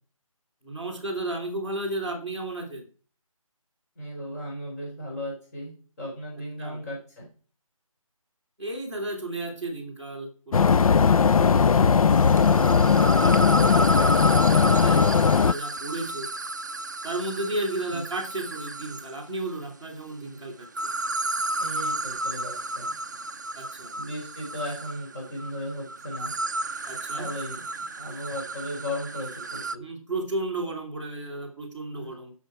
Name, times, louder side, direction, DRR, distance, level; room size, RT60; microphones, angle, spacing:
voice 1, 0.6-2.8 6.6-6.8 8.6-11.2 12.3-16.3 17.0-20.7 23.5-23.9 26.9-27.3 29.8-32.3, right 2 dB, 5° left, -7 dB, 1.8 m, -34 dB
voice 2, 4.0-5.7 6.0-7.3 17.9-18.1 21.6-22.9 24.0-26.3 27.1-27.6 28.0-29.8 31.9-32.1, equal, 30° left, -3 dB, 4.3 m, -36 dB
sound 1, 10.5-15.5, left 6 dB, 75° left, 0.4 m, -19 dB
sound 2, 12.1-19.2 20.6-29.8, right 1 dB, 30° right, 0.5 m, -32 dB
16.0 x 6.4 x 4.5 m, 0.39 s
figure-of-eight pair, 170°, 18 cm